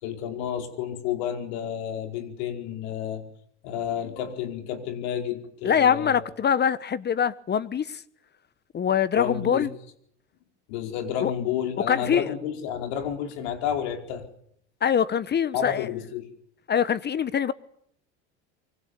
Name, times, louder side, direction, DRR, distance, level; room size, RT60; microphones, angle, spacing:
voice 1, 0.0-3.2 3.6-6.2 9.2-9.7 10.7-14.2 15.5-16.3, left 9 dB, 70° left, 4.9 m, -30 dB
voice 2, 5.6-8.0 8.7-9.7 11.2-11.3 11.9-12.3 14.8-15.9 16.7-17.5, left 8 dB, 30° left, 1.2 m, -23 dB
24.5 x 24.0 x 8.3 m
hypercardioid pair, 90°, 34 cm